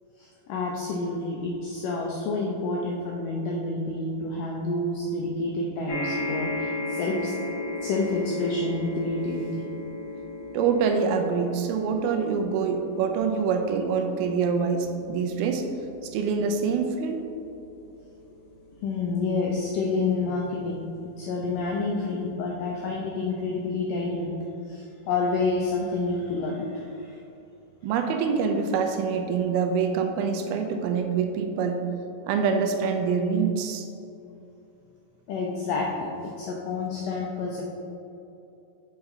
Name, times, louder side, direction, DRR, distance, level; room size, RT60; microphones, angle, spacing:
voice 1, 0.2-7.3 7.8-9.6 18.8-24.3 24.7-27.2 35.3-37.6, left 3 dB, 85° left, -1 dB, 1.9 m, -29 dB
sound 1, 5.9-20.4 21.2-21.3 21.5-21.6, left 2 dB, 70° left, 1.5 m, -37 dB
voice 2, 10.5-15.6 16.1-17.2 27.8-31.8 32.2-33.9, right 5 dB, 85° right, 5 dB, 2.4 m, -25 dB
6.9 x 5.2 x 4.0 m, 2.8 s
omnidirectional pair, 4.5 m